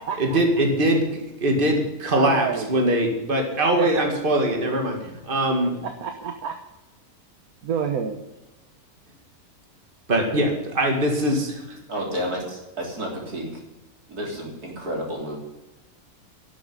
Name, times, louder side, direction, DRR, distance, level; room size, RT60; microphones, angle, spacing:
voice 1, 0.2-5.7 10.1-11.8, right 1 dB, 35° right, 2 dB, 2.3 m, -22 dB
voice 2, 2.1-3.0 3.8-3.9 5.8-6.5 7.6-8.2, right 7 dB, 75° right, 6 dB, 1.5 m, -28 dB
voice 3, 11.9-13.5 14.1-15.4, equal, 90° right, -1 dB, 4.0 m, -31 dB
11.5 x 7.7 x 9.9 m, 0.99 s
omnidirectional pair, 1.6 m